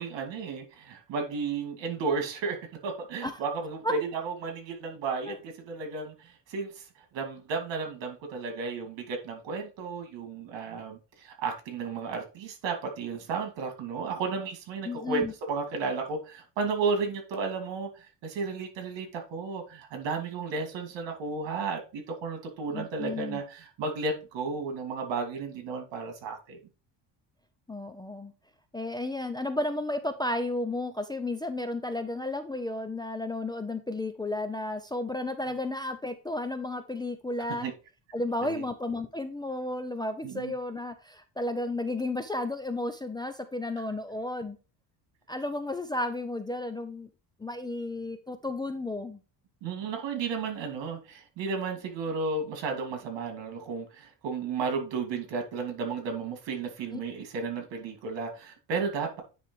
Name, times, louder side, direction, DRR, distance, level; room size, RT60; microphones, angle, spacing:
voice 1, 0.0-2.6 2.8-6.9 7.1-26.6 37.5-37.7 38.4-38.6 40.2-40.5 49.6-59.2, right 4 dB, 75° right, 2.7 m, -33 dB
voice 2, 14.8-15.3 22.7-23.4 27.7-28.3 28.7-37.7 38.1-44.6 45.3-47.1 47.4-49.2 56.9-57.0, left 2 dB, 10° left, 0.4 m, -33 dB
9.6 x 3.3 x 4.7 m
cardioid pair, 145°, 44 cm